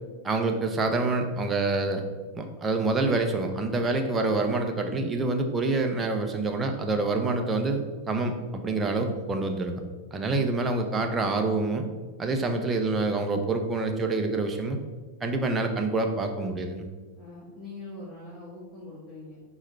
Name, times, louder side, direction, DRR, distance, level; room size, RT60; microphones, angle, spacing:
voice 1, 0.2-2.0 2.3-9.8 10.1-11.9 12.2-14.8 15.2-16.8, right 3 dB, 20° right, 4 dB, 0.9 m, -27 dB
voice 2, 17.1-19.4, left 2 dB, 15° left, -9 dB, 2.1 m, -42 dB
4.8 x 4.5 x 5.5 m, 1.3 s
hypercardioid pair, 110°, 0 cm